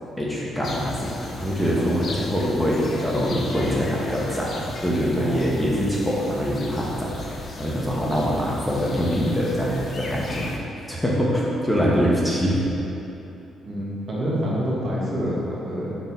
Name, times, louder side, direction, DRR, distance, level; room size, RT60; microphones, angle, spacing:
voice 1, 0.2-1.0 1.2-7.2 7.6-10.5 10.9-12.7, equal, 5° left, -5 dB, 1.0 m, -24 dB
sound 1, 0.6-10.6, left 2 dB, 50° left, 0.7 m, -37 dB
voice 2, 3.2-3.9 5.2-5.5 13.6-16.0, equal, 50° right, -6 dB, 1.5 m, -28 dB
6.3 x 3.9 x 4.1 m, 2.9 s
cardioid pair, 90°, 0 cm